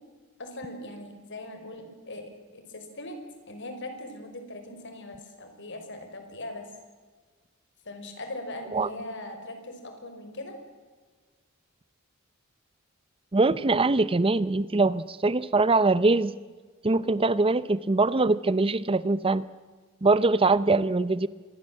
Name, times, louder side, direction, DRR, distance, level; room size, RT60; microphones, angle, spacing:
voice 1, 0.4-3.2 3.5-6.7 7.8-10.6, left 1 dB, 60° left, 6 dB, 5.1 m, -40 dB
voice 2, 13.3-16.3 16.8-19.5 20.0-21.3, right 3 dB, 25° right, 16 dB, 0.6 m, -23 dB
26.0 x 21.5 x 7.6 m, 1.4 s
head